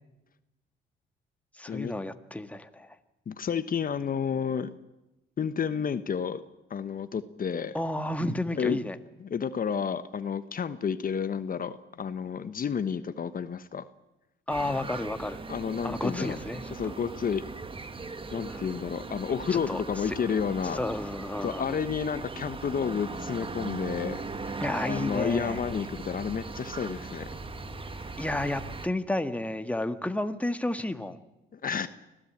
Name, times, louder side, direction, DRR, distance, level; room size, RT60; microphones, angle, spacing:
voice 1, 1.5-2.9 7.7-9.0 14.5-15.4 15.8-16.7 18.5-18.7 19.5-20.2 20.7-21.8 24.6-25.6 28.2-31.2, left 1 dB, 5° left, 8 dB, 1.7 m, -32 dB
voice 2, 3.3-4.7 5.4-6.4 6.7-7.8 8.6-8.8 9.3-13.9 15.5-16.4 16.7-17.4 18.3-20.8 21.4-27.3 31.5-31.9, left 7 dB, 45° left, 12 dB, 1.2 m, -31 dB
sound 1, 14.5-28.9, right 3 dB, 25° right, 1.7 m, -39 dB
25.5 x 16.5 x 8.8 m, 0.96 s
cardioid pair, 90°, 20 cm